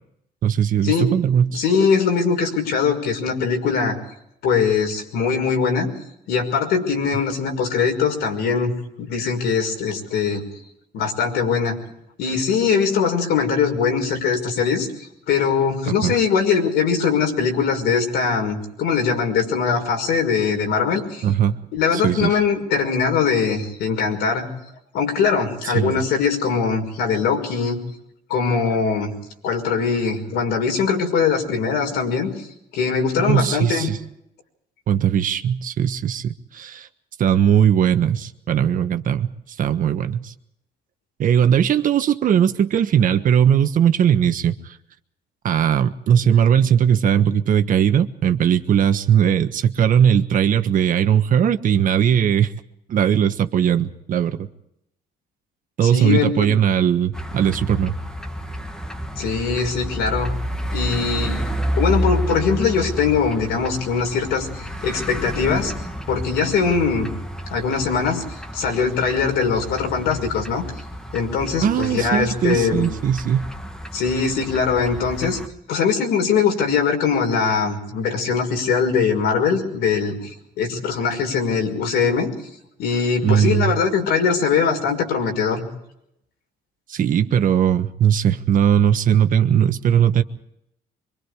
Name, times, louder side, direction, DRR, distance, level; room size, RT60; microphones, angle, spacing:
voice 1, 0.4-1.6 16.0-16.1 21.2-21.6 21.9-22.4 25.6-25.9 33.2-34.0 34.9-36.9 37.2-39.3 39.6-40.3 41.2-44.8 45.4-52.5 52.9-54.5 55.8-57.9 71.6-73.5 83.2-83.8 86.9-90.2, right 9 dB, 55° right, 8 dB, 1.4 m, -19 dB
voice 2, 1.5-4.0 4.4-5.9 6.3-8.7 9.0-10.4 10.9-11.8 12.2-21.2 21.7-24.5 24.9-27.8 28.3-29.1 29.4-32.5 32.7-33.9 55.8-56.5 59.2-60.3 60.7-65.7 66.1-67.1 67.5-68.2 68.5-70.6 71.1-72.9 73.9-75.4 75.7-80.2 80.6-82.3 82.8-85.6, left 5 dB, 80° left, 3 dB, 5.7 m, -21 dB
sound 1, 57.1-75.5, equal, 5° left, 1.8 m, -30 dB
25.0 x 24.0 x 5.0 m, 0.78 s
cardioid pair, 110°, 17 cm